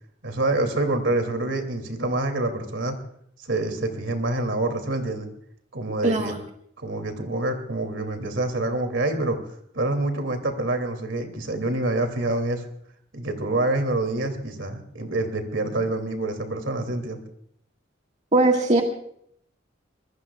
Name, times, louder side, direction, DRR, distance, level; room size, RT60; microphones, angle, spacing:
voice 1, 0.2-3.0 3.5-5.3 5.7-6.4 6.8-9.4 9.7-12.6 13.1-17.2, right 2 dB, 70° right, 6 dB, 2.7 m, -26 dB
voice 2, 6.0-6.4 18.3-18.8, right 2 dB, 40° right, 1 dB, 1.8 m, -19 dB
25.5 x 21.0 x 2.4 m, 0.67 s
head